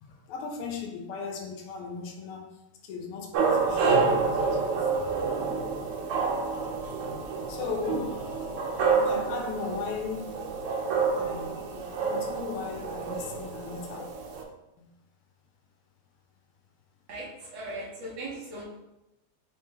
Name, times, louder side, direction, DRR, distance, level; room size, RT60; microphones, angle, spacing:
voice 1, 0.0-2.5 2.8-5.2 7.5-8.2 8.9-10.3 11.2-14.1 14.8-14.9, left 5 dB, 85° left, 1.6 m, -37 dB
sound 1, 3.3-14.4, right 4 dB, 90° right, 1.6 m, -28 dB
voice 2, 17.1-18.6, right 2 dB, 65° right, 1.5 m, -38 dB
4.0 x 3.1 x 3.3 m
omnidirectional pair, 2.4 m